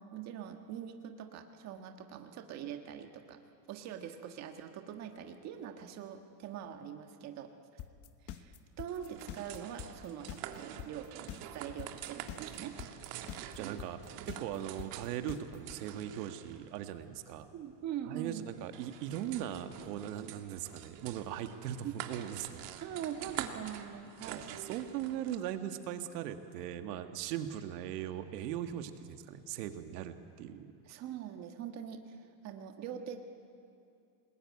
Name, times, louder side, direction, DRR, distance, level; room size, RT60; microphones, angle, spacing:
voice 1, 0.1-3.4 3.7-7.5 8.2-11.1 11.5-12.8 17.5-18.5 21.8-21.9 22.8-24.5 30.8-33.2, right 9 dB, 35° right, 5 dB, 1.6 m, -43 dB
sound 1, 7.8-15.8, left 11 dB, 30° left, 1.0 m, -44 dB
sound 2, 8.9-25.4, right 11 dB, 50° right, 1.9 m, -47 dB
voice 2, 13.6-17.5 18.1-22.6 24.3-30.7, right 10 dB, 75° right, 8 dB, 1.8 m, -39 dB
28.0 x 20.5 x 9.6 m, 2.5 s
supercardioid pair, 165°, 48 cm